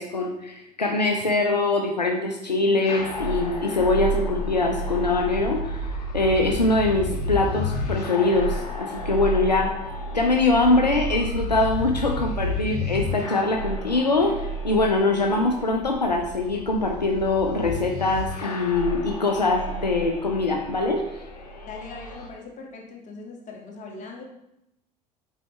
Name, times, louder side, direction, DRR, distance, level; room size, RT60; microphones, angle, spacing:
voice 1, 0.0-9.8 10.1-21.0, left 2 dB, 90° left, 2 dB, 0.5 m, -23 dB
sound 1, 2.9-22.3, left 1 dB, 70° left, 1.1 m, -31 dB
voice 2, 21.6-24.2, left 4 dB, 35° left, -1 dB, 1.8 m, -40 dB
7.5 x 4.6 x 3.2 m, 0.84 s
figure-of-eight pair, 65°, 21 cm